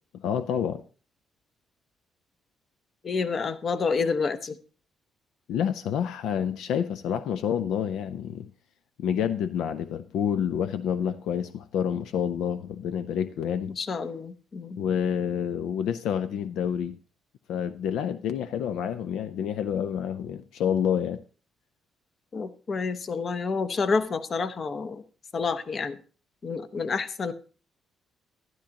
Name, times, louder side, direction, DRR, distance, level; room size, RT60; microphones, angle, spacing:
voice 1, 0.1-0.8 5.5-8.5 9.0-13.7 14.8-17.0 17.5-21.2, left 8 dB, 85° left, 0.5 m, -28 dB
voice 2, 3.0-4.6 13.7-14.8 22.3-25.0 25.3-26.0 26.4-27.3, left 4 dB, 45° left, 0.8 m, -29 dB
12.5 x 10.5 x 2.8 m
cardioid pair, 90°, 0 cm